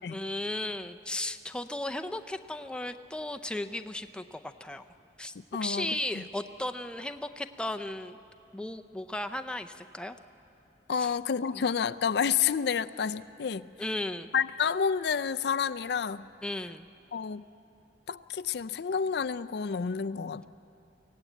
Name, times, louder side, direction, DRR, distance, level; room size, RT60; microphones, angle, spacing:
voice 1, 0.0-4.8 5.2-5.3 5.6-8.2 8.5-10.2 11.0-11.1 11.5-11.6 13.8-14.3 16.4-16.9, left 1 dB, 5° left, 7 dB, 0.5 m, -35 dB
voice 2, 5.5-6.2 10.9-13.7 14.3-16.2 17.1-17.4 18.1-20.5, left 6 dB, 65° left, 12 dB, 0.4 m, -29 dB
23.5 x 16.5 x 9.2 m, 2.9 s
head